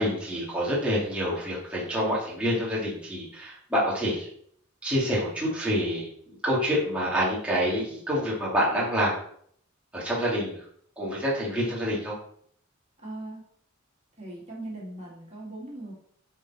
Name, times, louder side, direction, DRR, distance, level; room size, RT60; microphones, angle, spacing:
voice 1, 0.0-4.3 4.8-6.1 6.4-9.2 9.9-10.6 11.0-12.1, equal, 5° right, -7 dB, 2.6 m, -27 dB
voice 2, 13.0-13.4 14.2-15.9, right 1 dB, 35° right, -4 dB, 2.8 m, -39 dB
10.5 x 4.6 x 4.3 m, 0.63 s
head